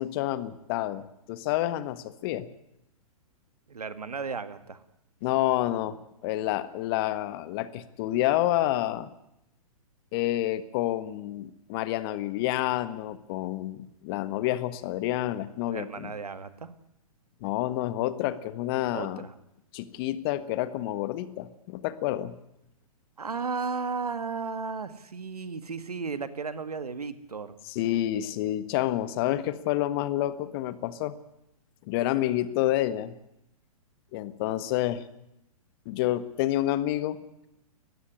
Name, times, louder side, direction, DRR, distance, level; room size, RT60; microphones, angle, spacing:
voice 1, 0.0-2.5 5.2-9.1 10.1-16.1 17.4-19.2 19.7-22.4 27.7-31.2 31.9-33.2 34.1-35.1 35.8-37.5, left 14 dB, 40° left, 15 dB, 1.5 m, -29 dB
voice 2, 3.7-4.8 15.7-16.8 18.9-19.3 23.2-27.5, right 5 dB, 85° right, 13 dB, 2.0 m, -34 dB
20.5 x 14.5 x 10.0 m, 0.83 s
hypercardioid pair, 125°, 19 cm